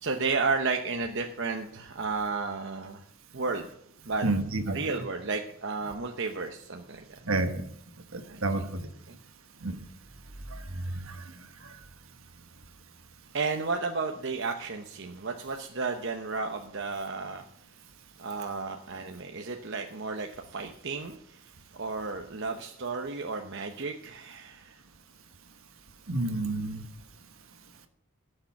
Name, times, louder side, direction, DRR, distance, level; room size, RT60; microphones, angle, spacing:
voice 1, 0.0-3.0 3.3-3.7 4.1-4.3 4.7-7.0 8.3-8.4 9.1-9.2 13.3-17.4 18.2-21.4 21.7-24.8, right 4 dB, 55° right, 3 dB, 0.9 m, -32 dB
voice 2, 4.2-4.8 7.3-7.6 8.1-8.9 9.6-9.8 10.5-11.2 11.6-11.7 26.1-26.8, right 2 dB, 70° right, 7 dB, 1.4 m, -30 dB
16.0 x 6.7 x 6.0 m, 0.72 s
head